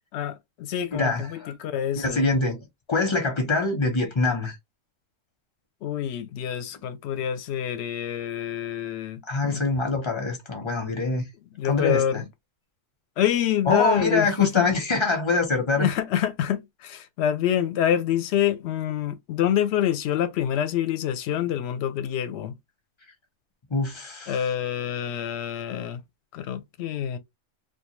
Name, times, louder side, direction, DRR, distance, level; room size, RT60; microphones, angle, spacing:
voice 1, 0.1-2.3 5.8-9.6 11.5-12.2 13.2-14.7 15.8-22.6 24.3-26.0 26.3-27.2, left 10 dB, 65° left, 0.8 m, -26 dB
voice 2, 0.9-1.5 2.0-4.6 9.3-11.3 11.7-12.2 13.7-15.9 23.7-24.4, left 3 dB, 25° left, 0.8 m, -24 dB
2.4 x 2.3 x 3.0 m
omnidirectional pair, 1.3 m